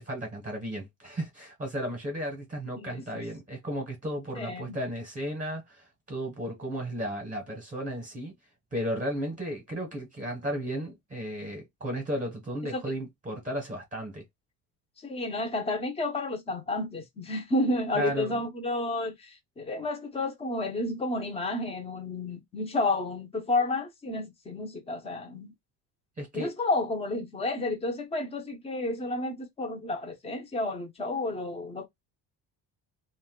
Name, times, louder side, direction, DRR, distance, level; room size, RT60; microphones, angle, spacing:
voice 1, 0.0-8.3 8.7-14.2 17.9-18.4 26.2-26.5, equal, 20° right, 0.8 m, -34 dB
voice 2, 2.8-3.2 4.3-4.8 12.7-12.8 15.0-25.5 26.3-31.9, left 2 dB, 15° left, 0.5 m, -31 dB
2.5 x 2.2 x 3.6 m
cardioid pair, 180°, 39 cm